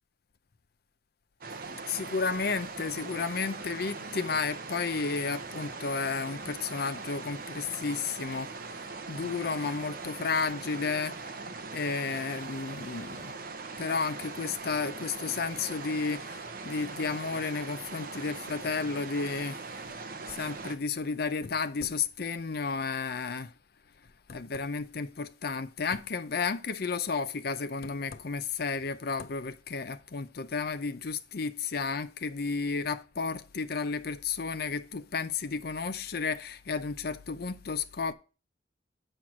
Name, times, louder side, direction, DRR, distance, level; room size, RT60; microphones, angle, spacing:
sound 1, 1.4-20.8, right 4 dB, 50° right, 0.8 m, -41 dB
voice 1, 1.9-13.3 13.8-19.6 20.3-23.5 24.3-38.1, left 4 dB, 55° left, 0.6 m, -32 dB
7.9 x 4.4 x 6.0 m
head